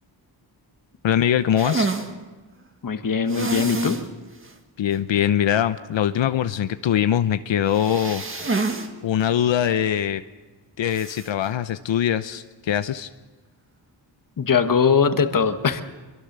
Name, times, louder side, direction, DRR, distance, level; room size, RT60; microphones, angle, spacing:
voice 1, 1.0-1.9 4.8-8.7 9.0-10.2 10.8-13.1, left 10 dB, 90° left, 11 dB, 0.8 m, -22 dB
sound 1, 1.6-2.1 3.3-4.1 4.4-4.5 4.9-5.0 7.7-8.9 9.2-9.3 10.9-11.3, right 3 dB, 30° right, 1.8 m, -27 dB
voice 2, 2.8-4.0 14.4-15.8, left 6 dB, 45° left, 8 dB, 1.5 m, -20 dB
26.0 x 23.0 x 6.8 m, 1.2 s
wide cardioid pair, 150°, 44 cm